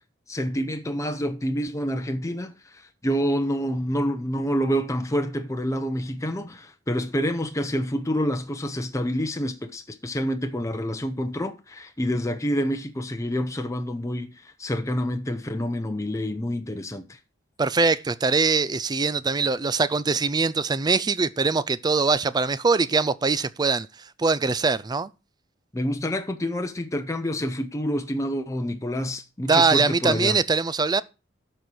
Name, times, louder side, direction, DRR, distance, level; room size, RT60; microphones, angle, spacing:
voice 1, 0.3-17.2 25.7-30.4, equal, 15° left, 0.8 m, -28 dB
voice 2, 17.6-23.9 24.2-25.1 29.5-31.0, right 4 dB, 20° right, 0.4 m, -22 dB
12.0 x 4.4 x 6.2 m
head